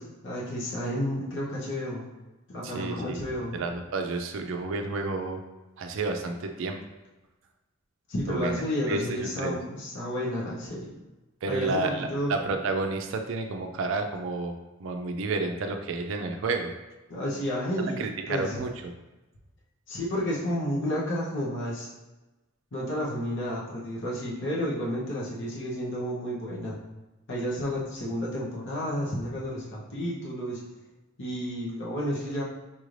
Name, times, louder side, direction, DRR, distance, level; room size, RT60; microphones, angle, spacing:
voice 1, 0.0-2.0 2.5-3.6 8.1-10.9 11.5-12.3 17.1-18.0 18.3-18.6 19.9-21.9 22.7-26.8 27.3-30.6 31.2-32.4, equal, 65° left, -5 dB, 0.9 m, -31 dB
voice 2, 2.6-3.2 3.5-5.4 5.8-6.8 8.3-9.5 11.4-14.5 14.8-16.7 18.0-18.7, right 3 dB, 65° right, 5 dB, 0.4 m, -31 dB
5.5 x 2.5 x 3.1 m, 1.1 s
head